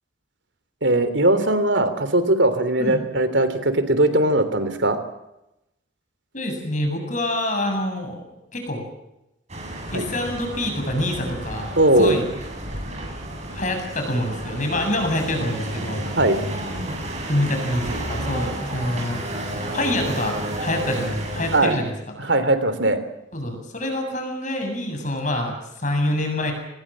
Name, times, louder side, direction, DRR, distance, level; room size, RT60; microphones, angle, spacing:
voice 1, 0.8-5.0 9.9-10.0 11.8-12.1 16.2-16.4 21.5-21.7 22.2-23.0, right 1 dB, 70° right, 11 dB, 3.3 m, -19 dB
voice 2, 6.3-8.2 8.5-8.8 9.9-11.7 12.0-12.3 13.5-16.0 17.3-19.2 19.7-21.9 23.3-26.5, left 1 dB, 40° left, 4 dB, 7.7 m, -26 dB
sound 1, 9.5-21.6, right 1 dB, 35° right, 7.4 m, -31 dB
26.5 x 20.5 x 7.6 m, 0.88 s
head